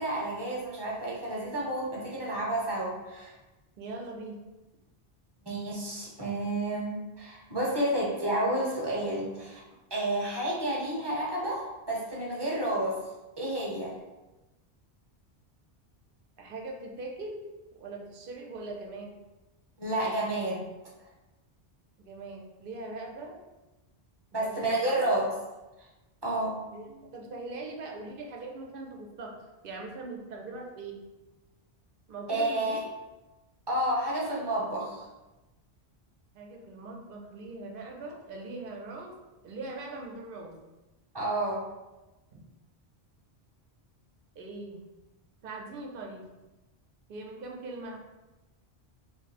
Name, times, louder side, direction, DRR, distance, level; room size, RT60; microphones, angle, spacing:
voice 1, 0.0-3.3 5.4-9.6 9.9-13.0 13.4-13.9 19.8-20.7 24.3-25.3 26.2-26.6 32.3-32.8 33.7-35.0 41.1-41.6, right 1 dB, 25° right, -4 dB, 0.7 m, -30 dB
voice 2, 3.8-4.4 16.4-17.4 17.8-19.2 22.0-23.4 24.3-25.1 26.7-29.4 29.6-31.0 32.1-32.8 36.3-39.1 39.4-40.5 42.3-42.4 44.4-44.8 45.4-46.3 47.1-48.0, right 2 dB, 60° right, 1 dB, 0.7 m, -41 dB
3.0 x 2.0 x 4.1 m, 1.1 s
omnidirectional pair, 1.1 m